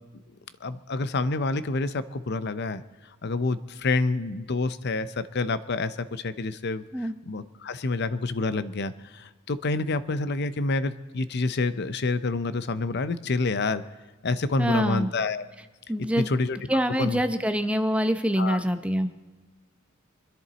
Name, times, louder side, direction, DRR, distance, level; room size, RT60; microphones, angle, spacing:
voice 1, 0.6-2.8 3.2-6.8 7.3-13.8 14.2-15.4 16.2-16.6 17.0-17.2 18.4-18.6, left 3 dB, 55° left, 14 dB, 0.7 m, -28 dB
voice 2, 14.6-15.1 15.9-16.3 16.7-19.1, equal, 5° right, 8 dB, 0.8 m, -25 dB
24.0 x 10.5 x 4.1 m, 1.3 s
head